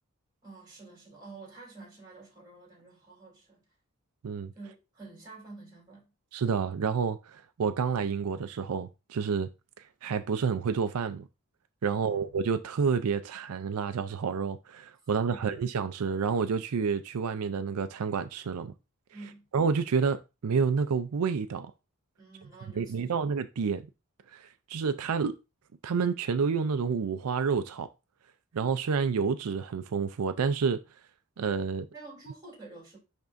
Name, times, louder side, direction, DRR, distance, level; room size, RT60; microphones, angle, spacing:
voice 1, 0.4-3.6 4.5-6.0 11.8-12.2 15.3-15.6 19.1-19.4 22.2-23.2 31.8-33.0, right 3 dB, 20° right, 3.2 m, -49 dB
voice 2, 6.3-9.5 10.0-11.3 11.8-18.7 19.5-21.7 22.8-23.9 24.3-25.3 25.8-27.9 28.5-30.8 31.4-31.9, right 5 dB, 90° right, 0.4 m, -29 dB
10.5 x 3.6 x 2.5 m
head